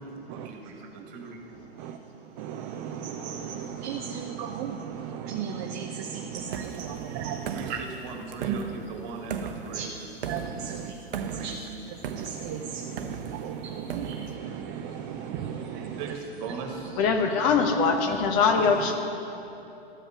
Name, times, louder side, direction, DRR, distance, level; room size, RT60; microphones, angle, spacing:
voice 1, 0.0-1.4 7.5-10.0 11.3-11.7 16.0-16.9, right 4 dB, 40° right, 2 dB, 2.0 m, -39 dB
voice 2, 2.4-7.8 8.4-8.6 9.7-9.9 10.3-11.6 12.1-16.0, right 8 dB, 20° right, 5 dB, 0.4 m, -35 dB
sound 1, 6.5-14.4, right 6 dB, 60° right, 0.8 m, -38 dB
voice 3, 17.0-18.9, left 5 dB, 35° left, 4 dB, 1.1 m, -22 dB
13.0 x 7.8 x 5.9 m, 2.9 s
figure-of-eight pair, 110°, 31 cm